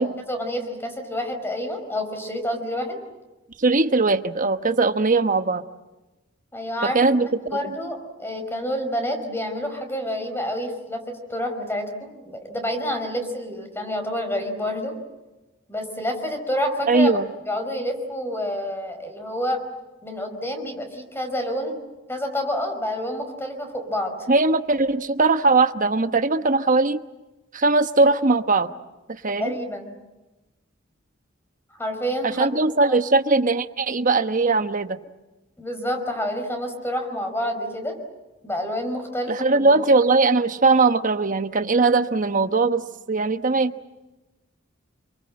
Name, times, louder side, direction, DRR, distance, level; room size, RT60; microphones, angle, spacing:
voice 1, 0.3-3.0 6.5-7.2 7.4-15.0 15.7-17.1 17.5-19.6 20.0-21.8 22.1-24.3 29.4-29.9 31.8-32.5 32.9-33.0 35.6-38.0 38.4-39.6, equal, 10° left, 6 dB, 5.1 m, -28 dB
voice 2, 3.6-5.6 6.8-7.3 7.6-7.7 16.9-17.3 24.3-27.0 27.5-28.7 29.1-29.5 32.4-35.0 39.3-42.8 43.1-43.7, right 3 dB, 45° right, 9 dB, 1.1 m, -20 dB
28.5 x 24.0 x 7.7 m, 1.1 s
head